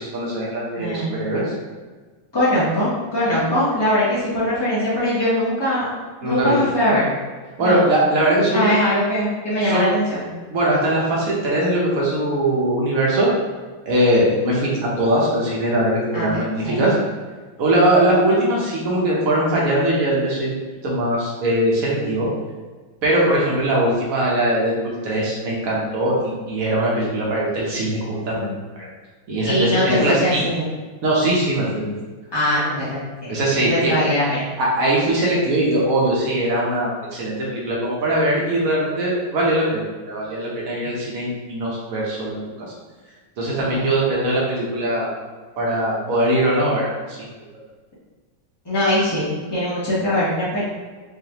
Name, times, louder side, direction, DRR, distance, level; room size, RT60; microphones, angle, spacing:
voice 1, 0.0-1.5 6.2-6.5 7.6-8.7 9.6-9.8 10.5-13.3 13.9-16.9 17.6-20.5 20.8-22.3 23.0-28.5 28.8-28.9 29.3-30.4 31.0-31.9 33.3-33.9 34.6-42.7 43.4-45.1 45.6-47.2, right 1 dB, 60° right, -4 dB, 0.9 m, -21 dB
voice 2, 0.8-1.1 2.3-5.9 6.2-7.1 7.6-7.8 8.5-10.2 16.1-16.3 16.6-16.9 29.5-30.7 32.3-33.3 33.6-34.4 43.7-43.9 48.6-50.6, left 1 dB, 40° left, -11 dB, 0.3 m, -21 dB
4.7 x 2.5 x 2.8 m, 1.4 s
omnidirectional pair, 2.3 m